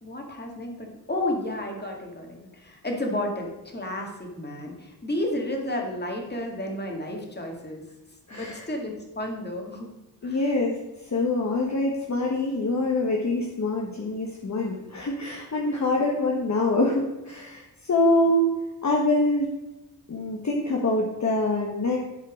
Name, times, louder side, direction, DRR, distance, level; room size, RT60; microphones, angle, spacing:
voice 1, 0.0-7.8 8.3-9.9 10.2-10.4, left 1 dB, 25° left, 1 dB, 2.0 m, -32 dB
voice 2, 8.3-8.7 10.2-10.8 11.1-18.5 18.8-19.5 20.1-22.0, left 2 dB, 40° left, -1 dB, 1.2 m, -25 dB
11.0 x 4.4 x 5.1 m, 0.96 s
wide cardioid pair, 90°, 41 cm